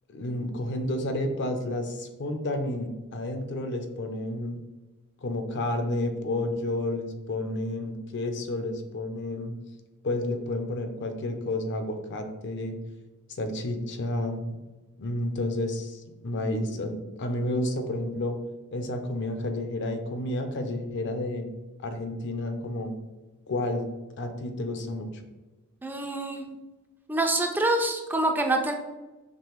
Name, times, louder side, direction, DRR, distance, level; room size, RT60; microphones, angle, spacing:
voice 1, 0.1-4.6 5.2-9.5 10.0-12.8 13.3-14.6 15.0-18.4 18.7-21.5 21.8-22.9 23.5-23.8 24.2-25.1, left 1 dB, 55° left, 7 dB, 0.5 m, -31 dB
voice 2, 25.8-26.4 27.1-28.7, right 2 dB, 10° right, 3 dB, 0.3 m, -26 dB
5.3 x 3.1 x 3.0 m, 1.1 s
head